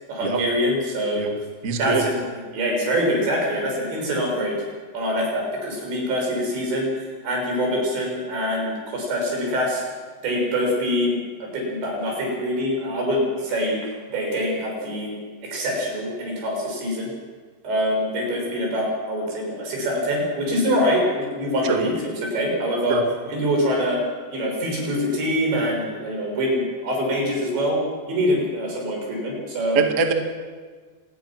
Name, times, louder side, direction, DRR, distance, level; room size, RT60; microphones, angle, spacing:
voice 1, 0.1-1.3 1.7-4.6 4.9-6.9 7.2-9.8 10.2-13.8 14.1-15.2 15.5-17.1 17.6-23.0 23.3-24.0 24.3-27.8 28.1-29.8, equal, 85° right, 0 dB, 8.8 m, -24 dB
voice 2, 1.6-2.0 21.6-21.8 22.9-23.0 29.7-30.1, right 5 dB, 40° right, 4 dB, 1.0 m, -23 dB
26.5 x 20.5 x 6.0 m, 1.5 s
omnidirectional pair, 5.0 m